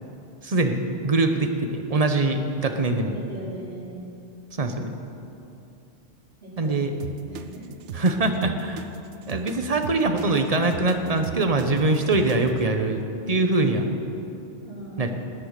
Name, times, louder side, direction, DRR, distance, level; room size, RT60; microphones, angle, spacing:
voice 1, 0.4-0.8 1.0-3.1 4.6-5.0 6.6-6.9 7.9-8.8 9.3-13.9 15.0-15.1, right 2 dB, 35° right, 6 dB, 1.0 m, -23 dB
voice 2, 3.3-3.9 6.4-7.7 14.6-15.1, equal, 60° right, -8 dB, 4.7 m, -39 dB
sound 1, 7.0-12.6, right 7 dB, 90° right, 1.0 m, -37 dB
19.0 x 8.4 x 6.6 m, 2.8 s
omnidirectional pair, 1.2 m